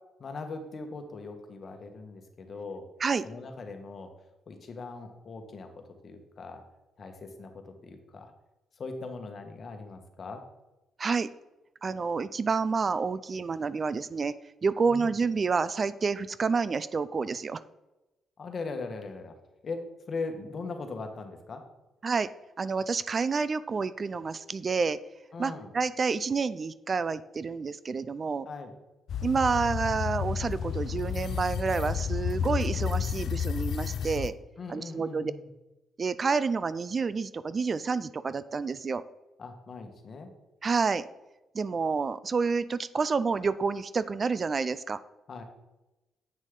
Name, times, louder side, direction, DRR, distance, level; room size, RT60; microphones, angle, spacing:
voice 1, 0.2-2.9 3.2-4.1 4.5-5.7 6.0-6.6 7.0-8.3 8.8-10.4 14.9-15.1 18.4-19.3 19.6-21.6 25.3-25.7 28.5-28.7 34.6-35.4 39.4-40.3 45.3-45.4, left 3 dB, 45° left, 6 dB, 1.3 m, -40 dB
voice 2, 11.8-14.3 14.6-17.6 22.0-22.3 22.6-25.0 25.4-28.5 29.2-34.3 34.7-35.3 36.0-39.0 40.6-41.1 41.5-45.0, right 5 dB, 40° right, 15 dB, 0.3 m, -29 dB
sound 1, 29.1-34.3, left 8 dB, 65° left, 0.4 m, -31 dB
8.3 x 6.2 x 3.7 m, 1.0 s
cardioid pair, 90°, 0 cm